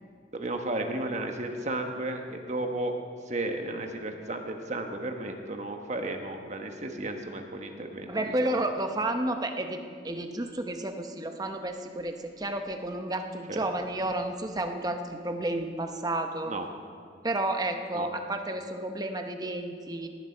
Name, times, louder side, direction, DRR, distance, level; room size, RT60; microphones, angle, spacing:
voice 1, 0.3-2.9 3.3-8.6 13.5-13.6 16.5-16.6 17.9-18.1, right 2 dB, 40° right, 4 dB, 1.2 m, -34 dB
voice 2, 8.1-16.5 17.2-20.1, right 1 dB, 20° right, 6 dB, 0.8 m, -31 dB
18.5 x 10.5 x 4.5 m, 2.2 s
head